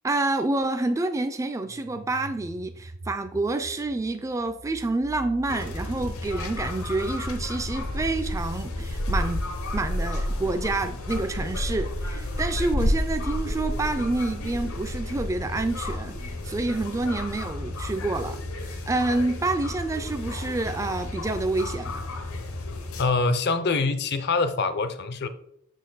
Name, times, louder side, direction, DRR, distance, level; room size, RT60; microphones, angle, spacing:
voice 1, 0.0-9.4 9.7-22.0, right 2 dB, 15° right, 0.3 m, -28 dB
sound 1, 1.6-10.3, right 2 dB, 50° right, 0.6 m, -45 dB
sound 2, 5.5-23.0, left 1 dB, 75° left, 1.0 m, -31 dB
voice 2, 23.0-25.3, left 3 dB, 50° left, 0.5 m, -24 dB
6.5 x 6.0 x 3.9 m
head